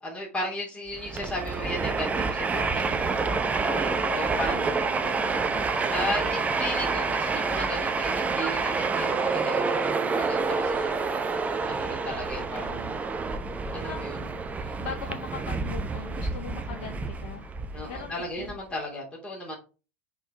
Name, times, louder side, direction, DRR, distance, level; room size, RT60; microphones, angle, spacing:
voice 1, 0.0-3.2 4.1-4.6 5.9-9.9 10.1-11.2 11.6-12.8 13.7-14.2 17.7-19.6, left 1 dB, 15° left, -3 dB, 3.0 m, -35 dB
Train, 0.9-18.5, right 4 dB, 20° right, 0.8 m, -28 dB
voice 2, 3.7-5.7 12.4-13.0 13.9-17.6 17.8-18.6, left 8 dB, 60° left, 4 dB, 1.0 m, -41 dB
5.5 x 4.5 x 4.6 m, 0.33 s
figure-of-eight pair, 85°, 8 cm